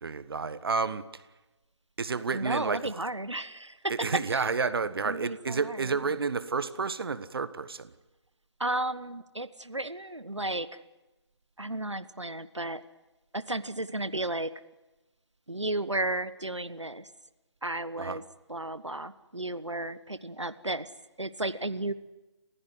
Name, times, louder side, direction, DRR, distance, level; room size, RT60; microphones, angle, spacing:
voice 1, 0.0-1.2 2.0-2.8 3.9-7.9 18.0-18.2, right 5 dB, 55° right, 14 dB, 1.3 m, -30 dB
voice 2, 2.3-4.7 5.0-6.2 8.6-10.8 11.6-12.8 13.3-14.5 15.5-17.1 17.6-18.2 18.5-20.9 21.2-21.9, right 1 dB, 90° right, 14 dB, 1.1 m, -33 dB
29.5 x 16.0 x 9.6 m, 1.1 s
figure-of-eight pair, 145°, 15 cm